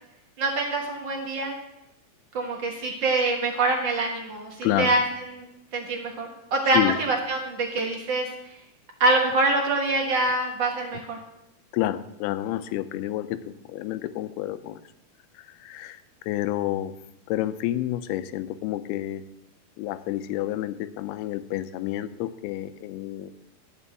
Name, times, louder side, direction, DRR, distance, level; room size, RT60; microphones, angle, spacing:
voice 1, 0.4-1.5 2.3-5.0 5.3-5.4 5.7-8.3 9.0-11.2, right 2 dB, 80° right, 1 dB, 1.0 m, -25 dB
voice 2, 4.6-5.1 6.7-7.0 11.7-14.8 15.4-16.9 17.3-19.2 19.8-23.3, left 13 dB, 85° left, 13 dB, 2.6 m, -29 dB
12.5 x 5.5 x 8.3 m, 0.86 s
omnidirectional pair, 4.4 m